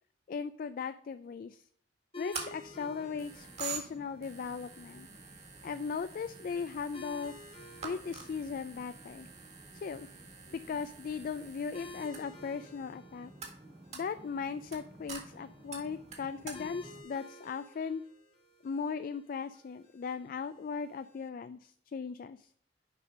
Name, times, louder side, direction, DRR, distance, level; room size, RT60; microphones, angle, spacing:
voice 1, 0.3-1.6 2.1-5.1 5.6-7.3 7.8-9.3 9.7-10.1 10.5-13.3 13.9-18.0 18.6-22.5, left 5 dB, 50° left, 12 dB, 0.3 m, -38 dB
sound 1, 2.1-21.3, left 2 dB, 35° left, 1.4 m, -54 dB
sound 2, 2.3-17.0, right 5 dB, 40° right, 1.8 m, -47 dB
6.7 x 5.1 x 5.1 m, 0.63 s
head